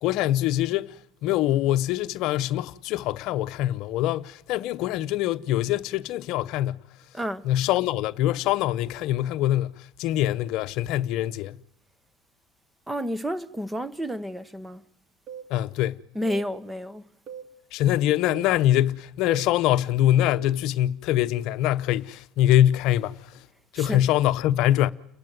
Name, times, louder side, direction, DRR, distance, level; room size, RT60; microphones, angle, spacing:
voice 1, 0.0-0.9 1.2-6.8 7.4-11.6 15.5-16.0 17.7-23.4 23.7-24.9, left 13 dB, 65° left, 0.8 m, -24 dB
voice 2, 7.1-7.5 12.9-14.8 16.1-17.1 23.7-24.1, equal, 10° right, 1.2 m, -30 dB
sound 1, 15.3-15.5 16.3-16.5 17.3-17.5 18.3-18.5 19.3-19.5 20.3-20.6, right 6 dB, 55° right, 3.1 m, -40 dB
30.0 x 12.0 x 9.5 m
supercardioid pair, 90°, 0 cm